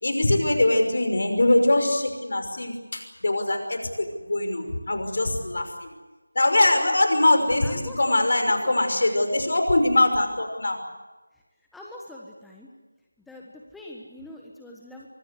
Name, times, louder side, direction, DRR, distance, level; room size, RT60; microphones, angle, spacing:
voice 1, 0.0-5.9 6.3-10.8, left 1 dB, 55° left, 6 dB, 5.8 m, -22 dB
voice 2, 6.7-9.3 11.7-12.7 13.3-15.1, left 1 dB, ahead, -3 dB, 1.3 m, -44 dB
24.0 x 24.0 x 8.1 m, 1.2 s
figure-of-eight pair, 170°, 0 cm